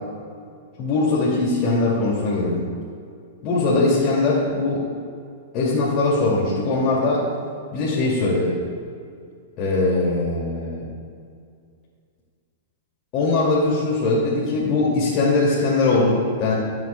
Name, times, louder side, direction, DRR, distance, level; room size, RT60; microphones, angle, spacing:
voice 1, 0.8-2.6 3.4-4.9 5.5-7.3 7.7-8.6 9.6-10.8 13.1-16.5, left 3 dB, 40° left, -6 dB, 2.3 m, -21 dB
17.5 x 7.7 x 2.2 m, 2.3 s
hypercardioid pair, 120°, 0 cm